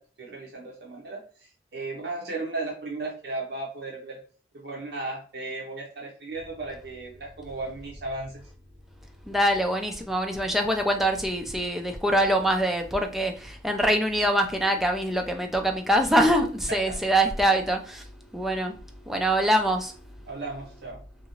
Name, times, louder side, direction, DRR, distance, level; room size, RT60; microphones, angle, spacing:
voice 1, 0.2-4.2 4.5-8.5 16.7-16.9 20.3-21.0, right 2 dB, 60° right, -2 dB, 0.6 m, -35 dB
voice 2, 9.2-18.8 19.1-19.9, right 1 dB, ahead, 3 dB, 0.3 m, -24 dB
2.8 x 2.6 x 2.8 m, 0.42 s
head